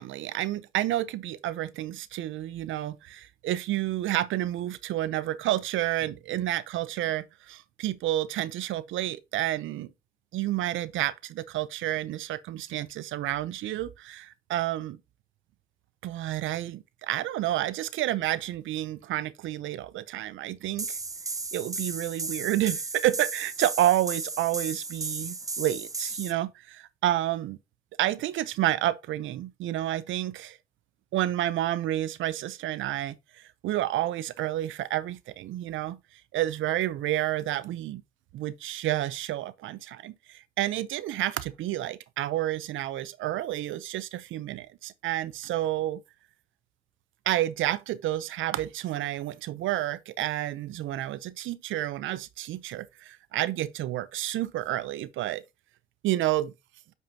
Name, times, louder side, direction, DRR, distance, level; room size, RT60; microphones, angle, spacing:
voice 1, 0.0-9.9 10.3-15.0 16.0-21.0 21.5-27.6 28.0-30.6 31.1-36.0 36.3-38.0 38.3-46.0 47.3-55.4 56.0-56.5, right 14 dB, 80° right, 0.6 m, -30 dB
sound 1, 20.8-26.3, right 3 dB, 15° right, 0.5 m, -35 dB
9.0 x 5.6 x 2.8 m
cardioid pair, 90°, 20 cm